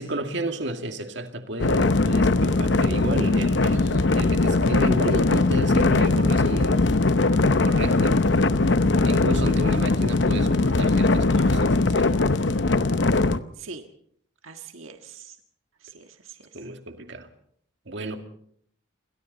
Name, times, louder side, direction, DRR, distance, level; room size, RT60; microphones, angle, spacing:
voice 1, 0.0-3.8 4.1-6.8 7.6-8.2 9.0-12.1 16.5-17.3 17.9-18.2, right 1 dB, 60° right, 5 dB, 2.2 m, -32 dB
sound 1, 1.6-13.4, left 3 dB, 60° left, 0.8 m, -20 dB
voice 2, 3.7-4.1 13.6-13.8 14.4-15.3 15.8-16.4, right 4 dB, 90° right, 5 dB, 1.6 m, -41 dB
28.5 x 23.0 x 4.1 m, 0.64 s
head